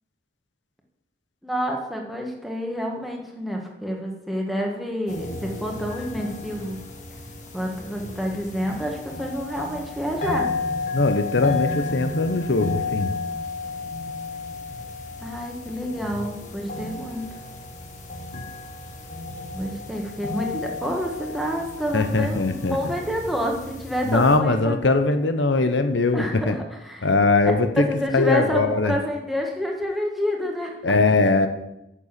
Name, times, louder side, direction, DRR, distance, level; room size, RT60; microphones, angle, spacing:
voice 1, 1.4-6.8 7.5-10.5 15.2-17.3 19.5-24.7 26.1-27.1 27.8-31.0, equal, ahead, 0 dB, 1.6 m, -28 dB
sound 1, 5.1-24.4, left 3 dB, 40° left, 1.5 m, -33 dB
voice 2, 10.9-13.2 18.3-18.5 21.9-22.8 24.0-26.6 27.0-27.9 28.1-29.0 30.8-31.5, left 3 dB, 85° left, 7 dB, 1.0 m, -21 dB
10.0 x 6.8 x 7.5 m, 0.89 s
head